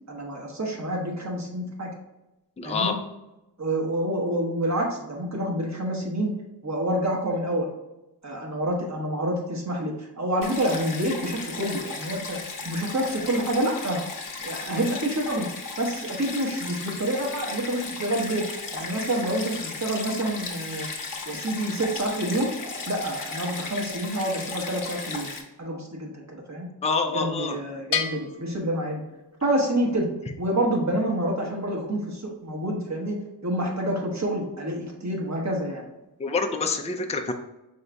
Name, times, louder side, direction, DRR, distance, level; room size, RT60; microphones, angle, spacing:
voice 1, 0.1-1.9 2.6-2.9 3.6-6.3 6.6-7.7 8.2-12.4 12.6-14.0 14.4-15.5 15.8-18.5 18.7-20.9 21.3-22.5 22.9-25.3 25.6-26.7 27.1-29.0 29.4-30.1 30.4-35.8, right 1 dB, 40° right, 0 dB, 1.2 m, -28 dB
voice 2, 2.6-3.0 26.8-27.6 36.2-37.3, left 4 dB, 15° left, 5 dB, 0.4 m, -26 dB
Stream, 10.4-25.4, left 4 dB, 50° left, 0.8 m, -36 dB
Bell, 27.9-29.6, left 7 dB, 75° left, 0.6 m, -32 dB
5.6 x 3.9 x 2.3 m, 0.98 s
wide cardioid pair, 95°, 42 cm